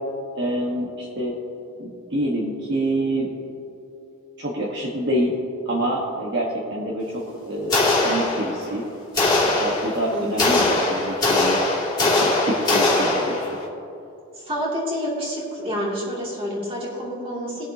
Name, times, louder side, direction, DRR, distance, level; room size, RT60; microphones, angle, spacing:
voice 1, 0.3-1.3 1.8-3.3 4.4-5.3 5.6-8.8 9.4-11.6 12.0-13.5, right 1 dB, 50° right, -4 dB, 1.4 m, -27 dB
sound 1, 7.7-8.8 9.1-13.6, left 2 dB, 20° left, 2.4 m, -21 dB
voice 2, 10.1-10.7 14.3-17.7, equal, 25° right, -5 dB, 2.7 m, -28 dB
21.0 x 7.2 x 2.9 m, 2.7 s
head